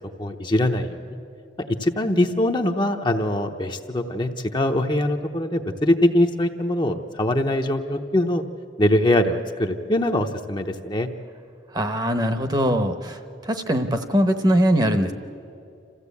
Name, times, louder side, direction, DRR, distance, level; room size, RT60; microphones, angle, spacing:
voice 1, 0.2-1.0 1.7-8.4 8.8-11.1, left 1 dB, 25° left, 4 dB, 0.8 m, -22 dB
voice 2, 11.7-15.1, equal, 20° right, 7 dB, 0.9 m, -21 dB
27.0 x 15.0 x 8.4 m, 2.6 s
head